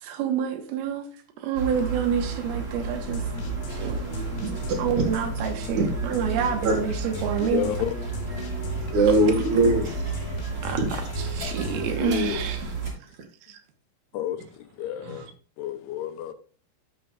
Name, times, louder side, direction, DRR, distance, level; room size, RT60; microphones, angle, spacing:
voice 1, 0.0-1.1 1.4-3.3 3.8-4.3 4.8-7.7 9.3-9.4 10.6-10.8 11.2-12.6 13.5-13.6, right 8 dB, 75° right, 2.9 m, -28 dB
sound 1, 1.5-12.9, right 5 dB, 25° right, 2.0 m, -32 dB
sound 2, 3.0-11.9, left 6 dB, 70° left, 2.9 m, -37 dB
voice 2, 7.4-8.0 11.8-12.4 14.1-15.3 15.6-16.3, left 11 dB, 85° left, 2.7 m, -31 dB
voice 3, 8.9-10.1 10.5-10.9, right 2 dB, 55° right, 2.3 m, -21 dB
11.0 x 7.7 x 2.4 m
omnidirectional pair, 4.6 m